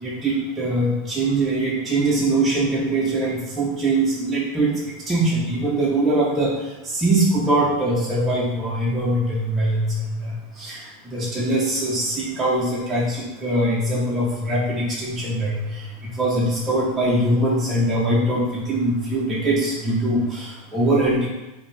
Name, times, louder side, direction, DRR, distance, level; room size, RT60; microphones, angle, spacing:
voice 1, 0.0-21.3, right 1 dB, 15° right, -7 dB, 0.9 m, -22 dB
4.8 x 2.9 x 3.4 m, 1.0 s
supercardioid pair, 125°, 0 cm